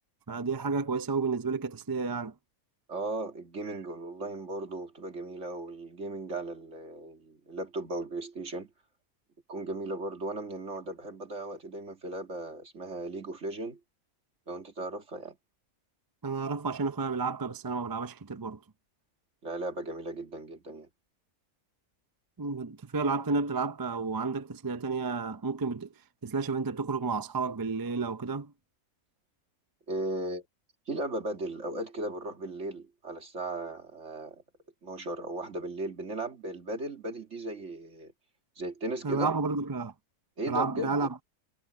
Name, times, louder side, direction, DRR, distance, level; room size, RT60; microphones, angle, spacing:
voice 1, 0.3-2.3 3.7-3.8 16.2-18.6 22.4-25.9 26.2-28.5 39.0-39.9 40.5-41.1, right 4 dB, 30° right, 0.4 m, -31 dB
voice 2, 2.9-8.7 9.5-13.8 14.5-15.4 19.4-20.9 29.9-30.4 30.9-34.4 34.8-38.1 38.6-39.3 40.4-41.1, right 2 dB, 55° right, 2.6 m, -36 dB
omnidirectional pair, 1.5 m